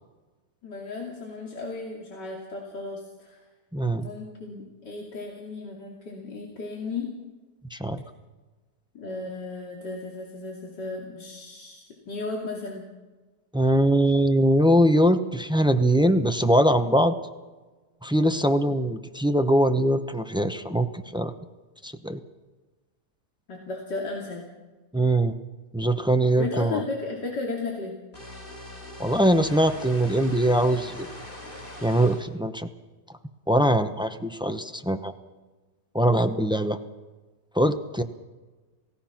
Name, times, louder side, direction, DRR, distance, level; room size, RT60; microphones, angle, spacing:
voice 1, 0.6-3.4 4.0-7.1 8.9-12.9 23.5-24.4 26.4-28.0, left 3 dB, 80° left, -2 dB, 3.4 m, -35 dB
voice 2, 3.7-4.1 7.7-8.0 13.5-17.1 18.0-21.3 21.8-22.2 24.9-25.3 25.7-26.8 29.0-31.1 31.8-32.7 33.5-35.1 35.9-36.8 37.5-38.0, right 1 dB, 5° right, 8 dB, 0.5 m, -22 dB
sound 1, 28.1-32.3, left 1 dB, 30° left, 4.2 m, -41 dB
28.0 x 17.0 x 6.0 m, 1.3 s
omnidirectional pair, 1.8 m